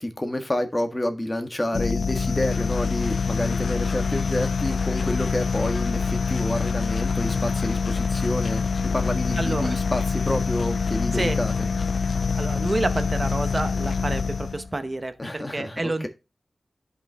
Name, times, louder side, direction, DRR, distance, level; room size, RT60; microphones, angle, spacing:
voice 1, 0.0-11.7 15.2-16.1, left 1 dB, 20° left, 1.6 m, -29 dB
sound 1, 1.7-14.7, left 5 dB, 80° left, 0.5 m, -25 dB
voice 2, 9.4-9.8 11.1-11.4 12.4-16.1, right 2 dB, 30° right, 0.8 m, -29 dB
10.5 x 5.7 x 3.5 m
wide cardioid pair, 115°, 0 cm